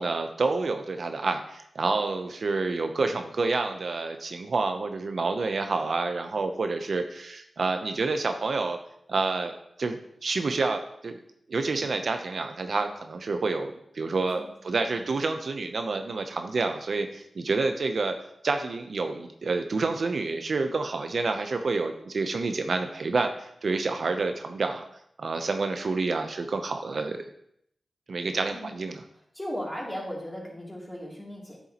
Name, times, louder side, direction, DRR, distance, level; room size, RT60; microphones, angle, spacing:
voice 1, 0.0-8.8 9.1-9.5 9.8-11.2 11.5-18.2 18.4-24.8 25.2-27.2 28.1-29.0, right 3 dB, 65° right, 6 dB, 0.6 m, -28 dB
voice 2, 14.1-15.1 28.5-28.7 29.3-31.6, equal, 10° left, -3 dB, 2.9 m, -37 dB
9.0 x 7.0 x 2.9 m, 0.72 s
cardioid pair, 60°, 0 cm